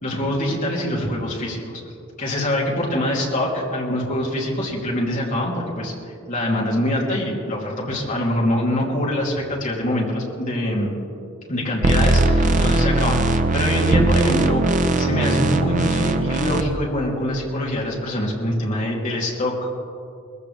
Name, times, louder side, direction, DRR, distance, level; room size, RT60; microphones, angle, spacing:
voice 1, 0.0-1.8 2.2-10.9 11.5-19.7, left 1 dB, 40° left, -4 dB, 2.9 m, -24 dB
sound 1, 11.8-16.6, right 2 dB, 35° right, 0.7 m, -19 dB
21.0 x 15.0 x 3.4 m, 2.5 s
head